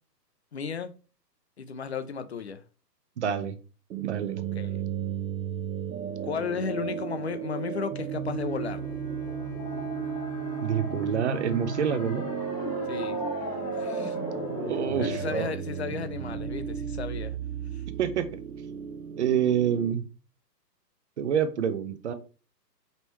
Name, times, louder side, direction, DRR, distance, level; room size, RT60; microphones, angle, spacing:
voice 1, 0.5-0.9 1.6-2.6 4.5-4.8 6.2-8.8 12.9-13.2 13.8-14.2 15.0-17.4, left 6 dB, 45° left, 0.5 m, -34 dB
voice 2, 3.2-3.5 4.0-4.4 10.6-12.3 14.7-15.5 18.0-18.4 19.2-20.0 21.2-22.1, right 8 dB, 45° right, 0.6 m, -27 dB
sound 1, 3.9-19.9, right 8 dB, 80° right, 0.7 m, -34 dB
Bowed string instrument, 8.3-13.7, left 9 dB, 65° left, 1.4 m, -45 dB
sound 2, 8.7-15.3, left 3 dB, 25° left, 0.8 m, -38 dB
5.3 x 3.1 x 3.0 m
hypercardioid pair, 155°, 50 cm